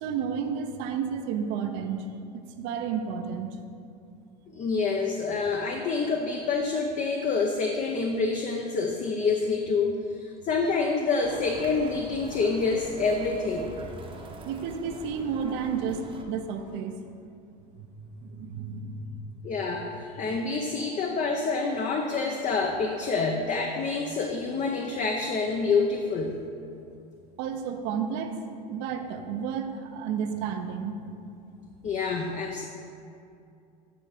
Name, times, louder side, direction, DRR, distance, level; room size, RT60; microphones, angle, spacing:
voice 1, 0.0-2.1 2.6-3.6 14.4-17.0 18.2-19.2 27.4-28.4 28.7-31.0, right 7 dB, 60° right, 6 dB, 0.6 m, -31 dB
voice 2, 4.6-13.7 19.4-26.4 31.8-32.6, left 4 dB, 35° left, 2 dB, 0.6 m, -27 dB
sound 1, 11.2-16.2, right 2 dB, 25° right, 0.8 m, -43 dB
8.8 x 3.5 x 4.9 m, 2.6 s
supercardioid pair, 95°, 21 cm